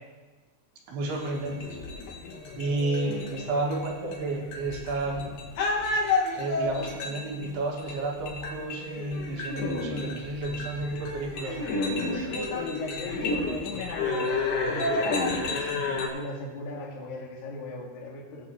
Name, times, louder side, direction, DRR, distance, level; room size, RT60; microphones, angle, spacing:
voice 1, 0.9-1.8 2.6-5.3 6.4-11.7, right 2 dB, 80° right, 0 dB, 3.6 m, -31 dB
sound 1, 1.1-16.1, left 3 dB, 80° left, 3.5 m, -31 dB
voice 2, 12.1-14.4 14.7-18.5, left 2 dB, 55° left, -2 dB, 2.9 m, -38 dB
18.0 x 8.6 x 2.9 m, 1.4 s
omnidirectional pair, 4.6 m